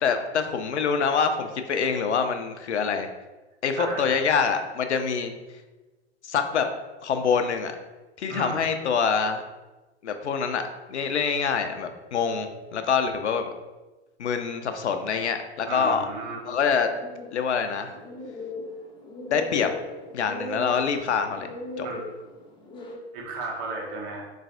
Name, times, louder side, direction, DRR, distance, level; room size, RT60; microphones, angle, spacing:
voice 1, 0.0-3.1 3.6-5.3 6.2-6.7 7.0-7.7 8.2-9.4 10.0-10.6 10.9-13.5 14.2-16.1 16.4-16.9 17.3-17.9 19.3-19.7 20.1-21.5 21.8-21.9, left 6 dB, 80° left, 7 dB, 0.5 m, -25 dB
voice 2, 3.8-4.2 8.3-8.7 15.7-16.4 21.8-22.1 23.1-24.2, right 3 dB, 45° right, -1 dB, 1.0 m, -34 dB
sound 1, 16.6-23.0, left 2 dB, 15° left, 0.5 m, -38 dB
3.8 x 3.1 x 2.6 m, 1.2 s
figure-of-eight pair, 95°, 33 cm